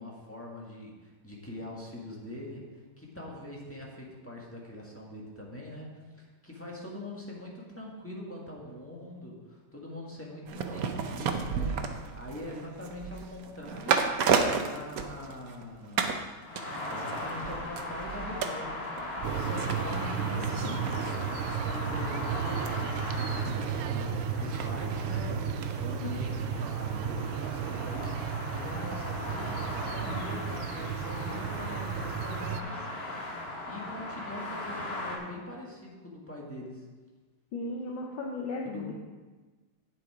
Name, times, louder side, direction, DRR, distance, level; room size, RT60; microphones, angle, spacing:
voice 1, 0.0-2.6 3.0-14.0 14.5-16.0 16.9-18.8 19.2-36.9 38.6-38.8, left 1 dB, 5° left, -4 dB, 1.4 m, -43 dB
sound 1, 10.5-15.6 16.0-16.2 16.6-25.7 26.0-26.1, right 6 dB, 70° right, 0.8 m, -33 dB
sound 2, 16.4-35.2, left 2 dB, 45° left, 2.2 m, -39 dB
sound 3, 19.2-32.6, right 7 dB, 85° right, 1.6 m, -33 dB
voice 2, 37.5-38.9, left 2 dB, 65° left, -1 dB, 1.6 m, -35 dB
9.3 x 7.6 x 4.9 m, 1.3 s
omnidirectional pair, 2.4 m